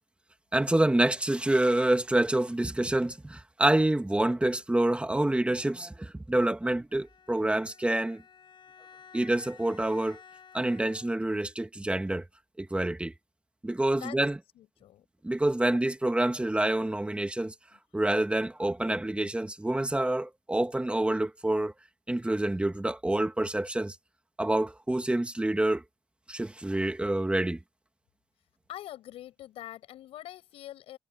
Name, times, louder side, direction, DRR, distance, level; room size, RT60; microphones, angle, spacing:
voice 1, 0.5-8.2 9.1-10.2 10.5-12.2 12.6-13.1 13.6-14.4 15.2-17.5 17.9-21.7 22.1-24.0 24.4-25.8 26.3-27.6, right 1 dB, 10° right, 2.2 m, -27 dB
Bowed string instrument, 6.9-11.4, left 7 dB, 55° left, 7.6 m, -54 dB
voice 2, 13.8-14.2 14.6-15.1 17.7-17.8 28.7-31.0, left 13 dB, 85° left, 7.1 m, -44 dB
cardioid pair, 85°, 10 cm